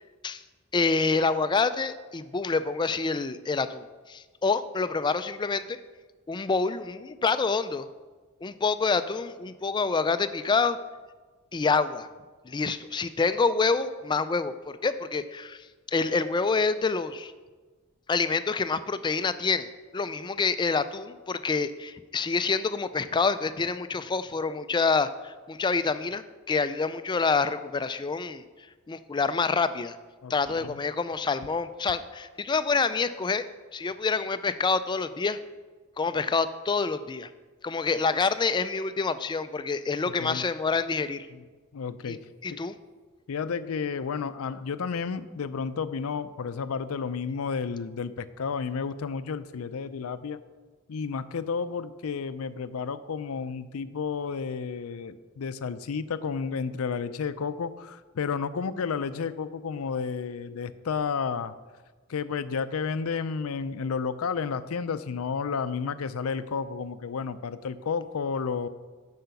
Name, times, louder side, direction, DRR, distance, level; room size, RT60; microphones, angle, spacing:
voice 1, 0.7-5.8 6.3-7.9 8.4-10.8 11.5-12.1 12.5-17.3 18.1-19.7 19.9-28.4 28.9-30.0 30.3-33.4 33.7-35.4 36.0-37.3 37.6-41.3 42.1-42.2 42.4-42.7, left 4 dB, 20° left, 12 dB, 0.3 m, -27 dB
voice 2, 30.2-30.8 40.1-40.5 41.3-41.4 41.7-42.2 42.5-42.6 43.3-50.4 50.9-61.5 62.1-68.7, left 5 dB, 90° left, 14 dB, 0.5 m, -31 dB
7.6 x 5.6 x 7.0 m, 1.4 s
head